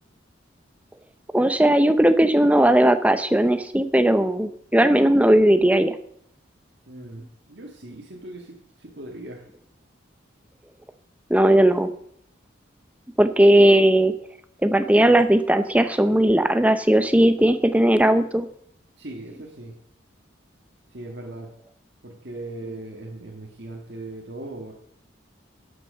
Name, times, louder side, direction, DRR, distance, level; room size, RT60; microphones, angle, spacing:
voice 1, 1.3-5.9 11.3-11.9 13.2-14.1 14.6-18.5, right 1 dB, 5° right, 10 dB, 0.7 m, -17 dB
voice 2, 6.9-9.4 19.0-19.7 20.9-21.5 22.0-24.7, right 2 dB, 60° right, 0 dB, 1.9 m, -39 dB
12.0 x 7.8 x 6.7 m, 0.68 s
head